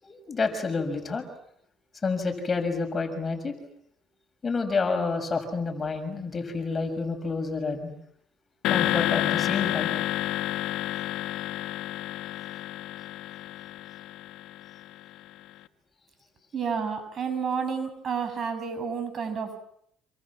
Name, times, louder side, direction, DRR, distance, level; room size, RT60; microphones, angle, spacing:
voice 1, 0.0-1.3 2.0-3.5 4.4-7.9 8.7-10.0, left 4 dB, 30° left, 6 dB, 6.6 m, -29 dB
sound 1, 8.6-15.0, left 13 dB, 75° left, 1.6 m, -29 dB
voice 2, 16.5-19.6, right 6 dB, 45° right, 9 dB, 7.6 m, -30 dB
28.0 x 27.5 x 7.4 m, 0.72 s
supercardioid pair, 90°, 0 cm